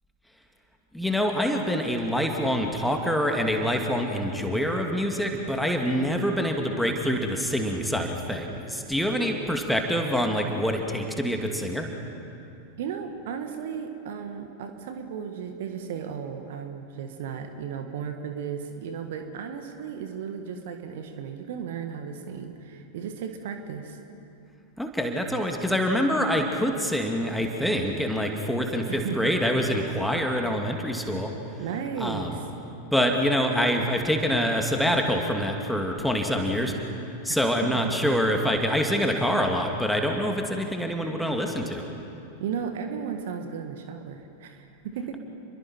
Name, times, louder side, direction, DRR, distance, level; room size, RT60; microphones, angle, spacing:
voice 1, 0.9-11.9 24.8-31.3 32.0-32.4 32.8-36.8 37.2-41.9, equal, ahead, 2 dB, 2.2 m, -26 dB
voice 2, 12.8-24.0 28.9-29.3 31.6-32.4 37.3-37.4 37.8-37.9 42.4-45.2, right 7 dB, 55° right, 6 dB, 1.7 m, -35 dB
30.0 x 22.5 x 4.5 m, 2.7 s
figure-of-eight pair, 90°, 0 cm